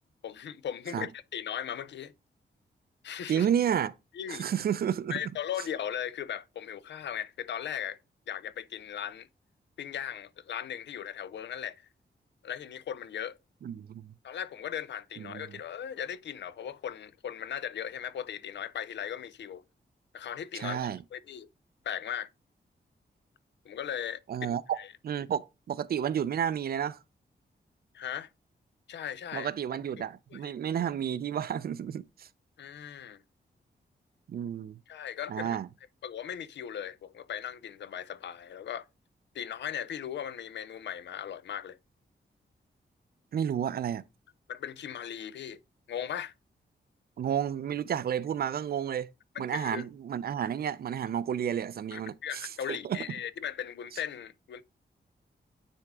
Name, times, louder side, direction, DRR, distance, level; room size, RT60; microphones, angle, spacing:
voice 1, 0.2-2.1 3.0-3.5 4.1-4.5 5.1-8.0 8.3-9.3 9.8-11.9 12.4-13.4 14.2-19.6 20.1-20.8 21.1-21.5 21.8-22.3 23.6-24.5 24.8-24.9 27.9-28.3 28.9-29.5 30.0-30.1 30.3-30.5 32.6-33.2 34.9-35.6 36.0-38.9 39.3-41.8 44.5-45.6 45.9-46.3 49.4-49.9 51.9-54.6, left 9 dB, 85° left, 0.5 m, -38 dB
voice 2, 3.3-3.9 4.3-5.2 13.6-14.1 15.2-15.6 20.5-21.0 24.3-24.8 25.0-27.0 29.3-32.3 34.3-34.8 35.3-35.7 43.3-44.0 47.2-49.1 49.4-53.0, right 9 dB, 60° right, 0.4 m, -31 dB
9.7 x 3.6 x 3.5 m
wide cardioid pair, 170°, 18 cm